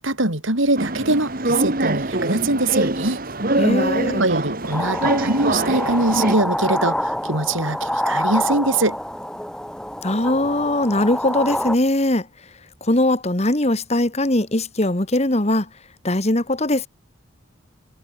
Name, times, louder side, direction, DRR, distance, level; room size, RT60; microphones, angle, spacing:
voice 1, 0.0-3.2 4.2-9.0, right 2 dB, 75° right, 4.9 m, -22 dB
sound 1, 0.8-6.4, right 2 dB, 45° right, 2.4 m, -23 dB
voice 2, 3.6-4.2 10.0-12.3 12.8-15.7 16.0-16.9, left 1 dB, 30° left, 1.7 m, -20 dB
sound 2, 4.7-11.8, left 1 dB, 5° left, 6.6 m, -26 dB
head